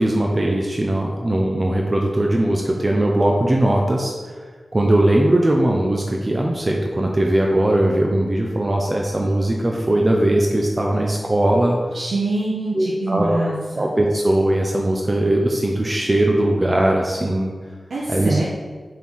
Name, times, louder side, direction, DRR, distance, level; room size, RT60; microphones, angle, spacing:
voice 1, 0.0-4.1 4.7-11.8 12.7-13.4 13.7-17.5 18.1-18.4, right 1 dB, 35° right, 0 dB, 0.8 m, -19 dB
voice 2, 11.9-13.9 17.9-18.4, right 2 dB, 85° right, -5 dB, 1.0 m, -24 dB
5.5 x 4.5 x 6.2 m, 1.5 s
cardioid pair, 55°, 0 cm